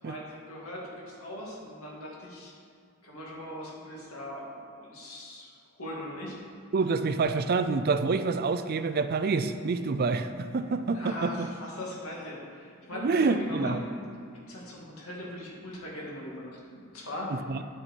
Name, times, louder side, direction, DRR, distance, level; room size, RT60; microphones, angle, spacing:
voice 1, 0.0-2.5 3.0-6.4 10.9-13.8 14.5-17.3, left 1 dB, 75° left, -3 dB, 2.2 m, -40 dB
voice 2, 6.7-11.5 12.9-13.8 17.3-17.6, right 4 dB, 45° right, 10 dB, 0.4 m, -27 dB
10.5 x 6.5 x 4.5 m, 2.3 s
head